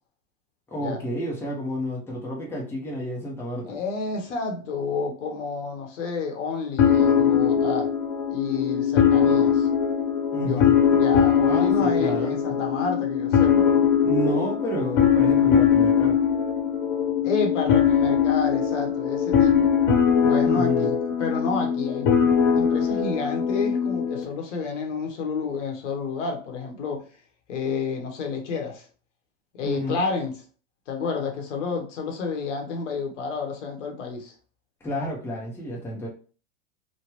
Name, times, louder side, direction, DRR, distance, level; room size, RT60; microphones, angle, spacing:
voice 1, 0.7-3.8 10.3-10.8 11.5-12.6 14.0-16.2 20.4-21.0 29.6-30.1 34.8-36.1, equal, 5° left, -2 dB, 0.7 m, -30 dB
voice 2, 3.6-7.9 8.3-9.7 10.4-13.7 17.2-19.7 20.2-22.1 22.5-27.0 27.5-28.9 29.5-30.3 30.9-34.3, left 4 dB, 75° left, 2 dB, 1.1 m, -30 dB
sound 1, 6.8-24.2, left 7 dB, 50° left, 1.1 m, -21 dB
3.2 x 2.2 x 3.0 m, 0.38 s
hypercardioid pair, 115°, 37 cm